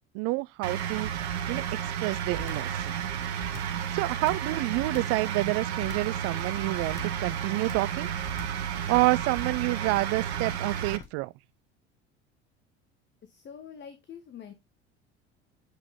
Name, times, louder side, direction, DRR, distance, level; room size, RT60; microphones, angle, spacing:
voice 1, 0.1-1.1 1.5-1.6 2.0-3.0 3.9-8.1 8.9-11.3, right 22 dB, 45° right, 0.4 m, -28 dB
sound 1, 0.6-11.0, right 8 dB, 70° right, 1.0 m, -32 dB
sound 2, 2.4-2.8 3.4-3.8 4.3-5.2 5.8-6.2 6.9-7.3 7.7-8.0 8.3-8.7 9.8-10.2 11.0-11.3, left 5 dB, 45° left, 1.7 m, -44 dB
voice 2, 13.2-14.5, left 8 dB, 30° left, 1.3 m, -45 dB
8.0 x 6.5 x 3.1 m
figure-of-eight pair, 65°, 34 cm